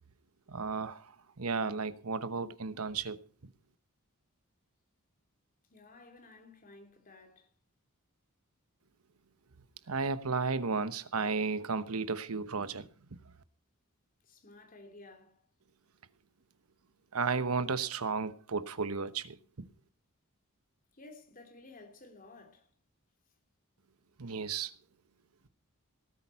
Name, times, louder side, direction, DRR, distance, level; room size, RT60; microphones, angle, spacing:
voice 1, 0.5-3.5 9.9-13.2 17.1-19.7 24.2-24.7, right 4 dB, 85° right, 1.0 m, -34 dB
voice 2, 5.7-7.5 14.2-15.4 20.9-22.7, left 2 dB, 40° left, 3.3 m, -54 dB
18.5 x 8.5 x 5.6 m
head